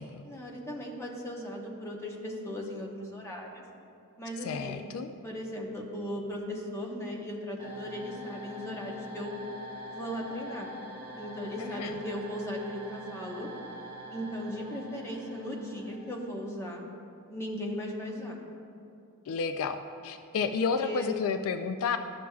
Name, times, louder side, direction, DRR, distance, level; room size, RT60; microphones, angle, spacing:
voice 1, 0.2-3.6 4.2-4.8 5.2-9.4 9.9-10.7 11.2-13.5 14.1-16.8 17.3-18.4 20.4-21.1, equal, 10° left, -2 dB, 0.9 m, -37 dB
voice 2, 4.4-5.1 11.6-11.9 19.3-22.0, left 5 dB, 65° left, 8 dB, 0.3 m, -31 dB
sound 1, 7.6-16.5, equal, 20° right, 1.5 m, -45 dB
13.0 x 6.1 x 2.3 m, 2.6 s
head